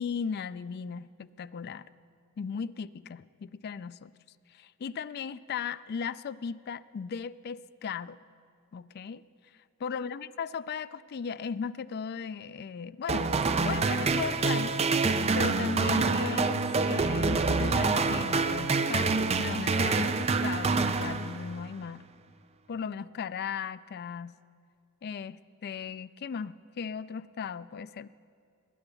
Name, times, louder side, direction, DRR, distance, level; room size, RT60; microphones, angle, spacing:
voice 1, 0.0-1.9 2.4-4.1 4.5-8.2 8.7-9.2 9.8-13.3 13.6-14.8 15.3-22.0 22.7-24.4 25.0-28.1, left 6 dB, 45° left, 16 dB, 0.3 m, -37 dB
sound 1, 13.1-21.7, right 4 dB, 30° right, 0.5 m, -27 dB
19.5 x 9.0 x 7.0 m, 2.3 s
head